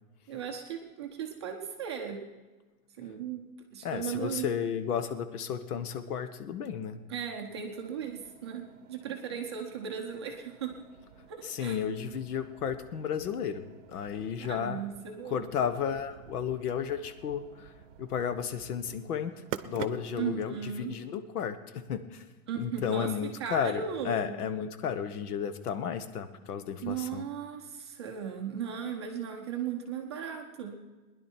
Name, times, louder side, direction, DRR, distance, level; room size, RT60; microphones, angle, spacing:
voice 1, 0.3-2.2 3.0-3.5 3.7-4.5 7.1-10.8 11.3-11.8 14.4-15.5 20.2-21.0 22.5-23.1 23.4-24.4 26.8-30.8, right 8 dB, 20° right, 1 dB, 0.5 m, -37 dB
voice 2, 3.8-7.0 11.4-13.6 13.9-14.8 15.2-17.7 18.0-19.3 19.6-22.2 22.6-27.2, left 8 dB, 85° left, 11 dB, 1.2 m, -33 dB
sound 1, 7.5-20.4, right 10 dB, 55° right, 0.7 m, -48 dB
20.0 x 10.5 x 4.5 m, 1.2 s
supercardioid pair, 175°, 44 cm